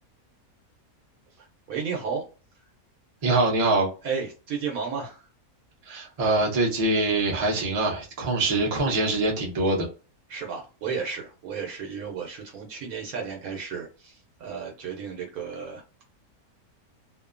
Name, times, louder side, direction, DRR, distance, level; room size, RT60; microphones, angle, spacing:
voice 1, 1.4-2.2 4.0-5.2 10.3-16.0, right 6 dB, 80° right, 1.1 m, -33 dB
voice 2, 3.2-3.9 5.9-9.9, right 2 dB, 35° right, 0.7 m, -24 dB
2.7 x 2.1 x 2.4 m
omnidirectional pair, 1.5 m